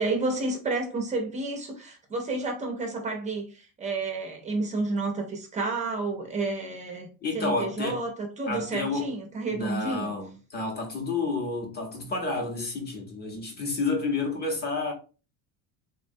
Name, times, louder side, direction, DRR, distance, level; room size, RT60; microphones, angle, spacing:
voice 1, 0.0-7.1 7.3-10.1, right 3 dB, 15° right, 0.4 m, -30 dB
voice 2, 7.2-8.0 8.5-9.1 9.5-14.9, left 3 dB, 20° left, 0.7 m, -30 dB
3.5 x 2.1 x 2.6 m
cardioid pair, 170°, 44 cm